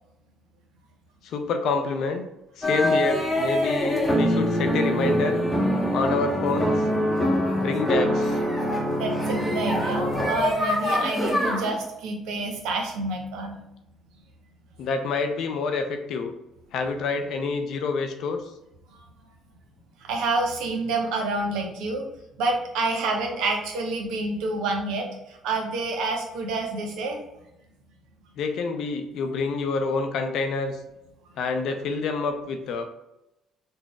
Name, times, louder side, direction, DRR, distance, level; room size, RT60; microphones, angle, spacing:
voice 1, 1.2-2.2 2.6-5.4 5.9-6.8 7.5-8.4 14.8-16.3 16.7-18.4 28.4-30.8 31.4-32.8, left 4 dB, 65° left, 6 dB, 0.5 m, -27 dB
sound 1, 2.6-11.8, equal, 5° left, 1.0 m, -24 dB
voice 2, 9.0-13.6 18.9-19.0 20.0-22.0 22.4-27.2, right 3 dB, 75° right, 2 dB, 0.7 m, -28 dB
3.9 x 2.1 x 3.5 m, 0.89 s
hypercardioid pair, 60°, 0 cm